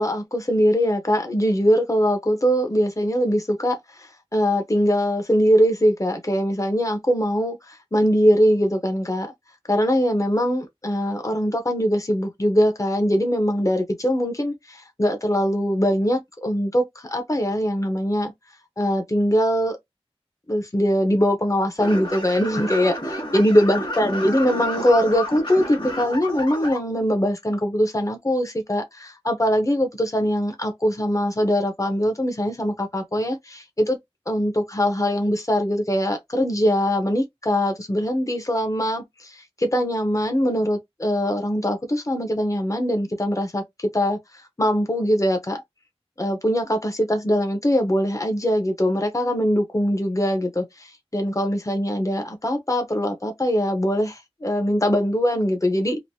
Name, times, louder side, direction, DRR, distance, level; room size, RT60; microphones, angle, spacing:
voice 1, 0.0-9.3 9.7-18.3 18.8-19.8 20.5-34.0 34.3-44.2 44.6-45.6 46.2-56.0, equal, 30° left, 0.8 m, -22 dB
sound 1, 21.8-26.8, left 1 dB, 50° left, 1.3 m, -30 dB
3.1 x 2.6 x 2.6 m
wide cardioid pair, 40°, 10 cm